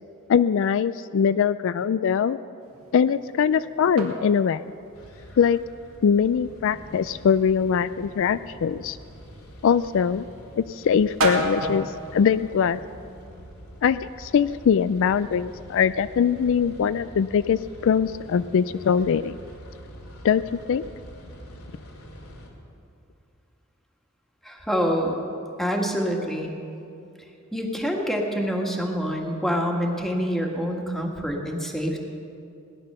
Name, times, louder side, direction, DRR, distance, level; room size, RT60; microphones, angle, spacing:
voice 1, 0.3-2.4 2.9-4.6 5.4-5.6 6.0-9.0 9.6-10.2 10.6-12.8 13.8-19.4 20.2-20.9, left 7 dB, 65° left, 14 dB, 0.3 m, -22 dB
sound 1, 2.6-13.3, right 1 dB, 75° right, 2.3 m, -35 dB
sound 2, 4.9-22.5, equal, 90° left, 2.4 m, -45 dB
voice 2, 24.4-25.2 25.6-26.5 27.5-32.0, equal, ahead, 1 dB, 1.7 m, -26 dB
18.0 x 11.0 x 6.7 m, 2.6 s
head